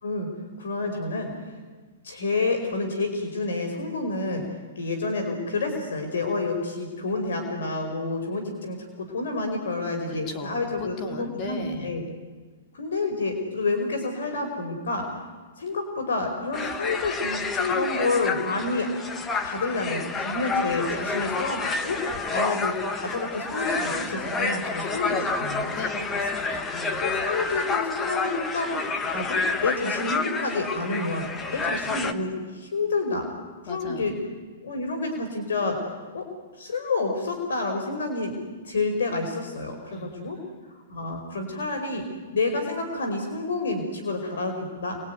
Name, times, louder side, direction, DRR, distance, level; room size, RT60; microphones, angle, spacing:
voice 1, 0.6-1.3 2.0-4.4 4.7-12.0 12.7-15.1 15.6-18.9 19.4-22.0 22.3-25.8 27.0-33.3 33.7-34.1 34.6-35.9 36.1-36.3 36.6-38.3 38.6-40.4 40.9-42.1 42.3-45.0, left 3 dB, 75° left, 4 dB, 5.0 m, -29 dB
voice 2, 10.1-11.9 24.8-25.4 25.7-27.1 31.4-32.0 33.7-34.1 39.9-40.6, left 3 dB, 35° left, 5 dB, 3.1 m, -38 dB
sound 1, 16.5-32.1, left 4 dB, 15° left, 1.7 m, -29 dB
28.5 x 21.5 x 9.5 m, 1.4 s
hypercardioid pair, 140°, 0 cm